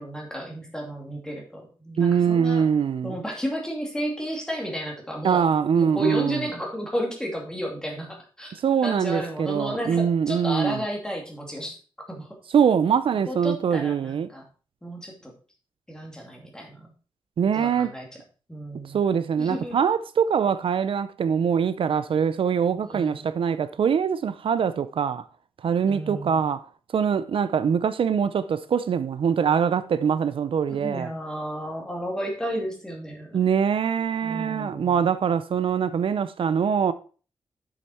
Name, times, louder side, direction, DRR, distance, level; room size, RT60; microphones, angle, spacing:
voice 1, 0.0-2.7 3.0-5.4 5.7-8.5 8.8-11.8 12.1-12.4 13.3-14.4 14.8-15.3 15.9-16.9 17.5-18.1 18.5-19.0 19.4-19.8 22.7-23.2 25.9-26.4 30.7-33.4 34.2-35.1, equal, 5° left, 2.4 m, -33 dB
voice 2, 2.0-3.2 5.2-6.5 8.5-10.8 12.5-14.3 17.4-17.9 18.8-25.2 25.6-26.7 26.9-31.1 33.3-36.9, right 7 dB, 70° right, 0.5 m, -23 dB
7.8 x 6.5 x 4.2 m
wide cardioid pair, 150°, 9 cm